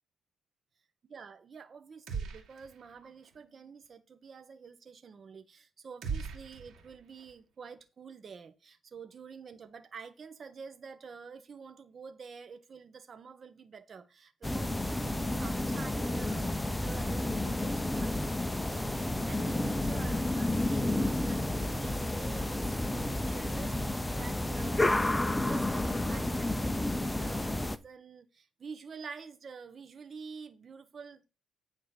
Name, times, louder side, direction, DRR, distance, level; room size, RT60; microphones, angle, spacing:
voice 1, 1.1-31.3, right 5 dB, 45° right, 1.0 m, -49 dB
sound 1, 2.1-2.9 3.2-3.3 6.0-7.3, right 5 dB, 70° right, 2.3 m, -39 dB
sound 2, 14.4-27.8, left 1 dB, 10° left, 0.6 m, -31 dB
8.7 x 3.9 x 6.7 m
cardioid pair, 90°, 0 cm